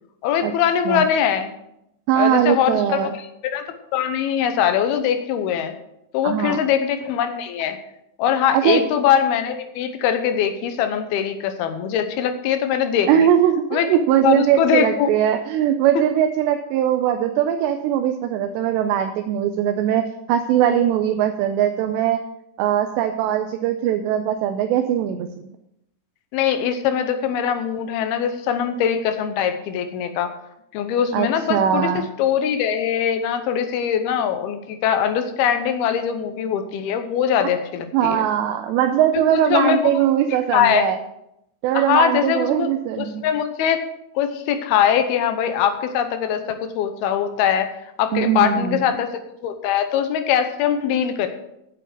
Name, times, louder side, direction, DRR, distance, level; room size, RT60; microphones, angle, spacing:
voice 1, 0.2-1.5 2.2-3.1 3.4-3.6 3.9-5.7 6.1-7.8 8.2-13.3 13.7-13.9 14.2-15.1 26.3-30.3 30.7-38.2 39.1-39.9 40.5-40.9 41.7-42.7 43.0-43.8 44.2-47.7 48.0-49.1 49.4-51.3, left 9 dB, 75° left, 7 dB, 2.6 m, -22 dB
voice 2, 2.1-3.1 6.2-6.6 8.5-8.8 13.1-20.0 20.3-22.2 22.6-25.5 31.1-32.1 37.9-41.0 41.6-43.3 48.1-48.8, right 10 dB, 85° right, 6 dB, 2.9 m, -20 dB
9.3 x 8.2 x 6.1 m, 0.81 s
omnidirectional pair, 4.9 m